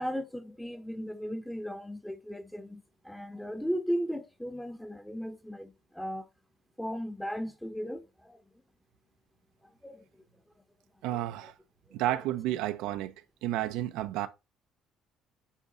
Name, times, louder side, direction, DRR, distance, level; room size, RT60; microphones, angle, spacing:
voice 1, 0.0-6.3 6.8-8.4 9.8-10.2 11.1-11.5, equal, 5° left, 1.2 m, -36 dB
voice 2, 11.0-11.5 11.9-13.1 13.4-14.3, right 14 dB, 80° right, 0.8 m, -31 dB
8.4 x 4.6 x 4.0 m
supercardioid pair, 80°, 0 cm